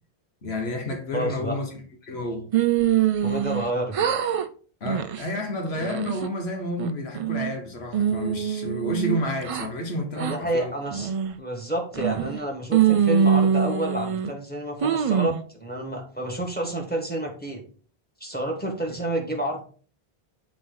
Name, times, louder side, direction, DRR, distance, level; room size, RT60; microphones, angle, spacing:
voice 1, 0.4-2.5 4.8-10.7, left 1 dB, 85° left, 1.5 m, -30 dB
voice 2, 1.1-1.6 3.2-4.0 10.2-11.1 11.4-17.6 18.2-19.6, right 1 dB, 10° left, 1.5 m, -29 dB
sound 1, 2.5-3.7 3.9-4.5 4.9-5.2 5.7-6.3 6.8-7.5 7.9-9.7 10.2-10.4 10.9-11.4 11.9-12.4 12.7-14.3 14.8-15.4, right 8 dB, 55° right, 0.4 m, -23 dB
7.6 x 3.9 x 3.8 m
omnidirectional pair, 1.0 m